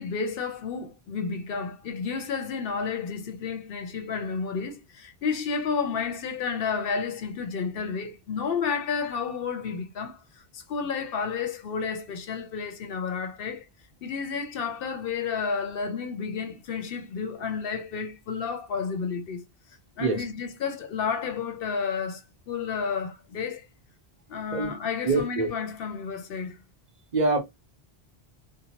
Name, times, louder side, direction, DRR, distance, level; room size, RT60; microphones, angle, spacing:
voice 1, 0.0-10.2 10.5-13.7 14.0-19.4 20.0-22.2 22.5-23.7 24.3-26.6, left 5 dB, 65° left, 0.7 m, -31 dB
voice 2, 25.0-25.5 27.1-27.4, right 3 dB, 45° right, 0.8 m, -24 dB
2.8 x 2.0 x 2.7 m
omnidirectional pair, 1.1 m